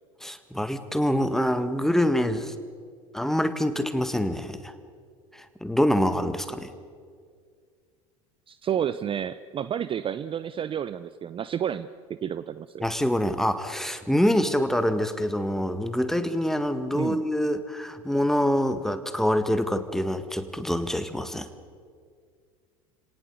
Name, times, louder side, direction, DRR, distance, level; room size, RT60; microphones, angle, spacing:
voice 1, 0.2-2.5 3.1-4.7 5.3-6.7 12.8-21.5, equal, ahead, 10 dB, 1.8 m, -25 dB
voice 2, 8.5-12.8 16.9-17.2, right 9 dB, 30° right, 14 dB, 0.7 m, -30 dB
30.0 x 18.0 x 8.0 m, 2.1 s
figure-of-eight pair, 70°, 18 cm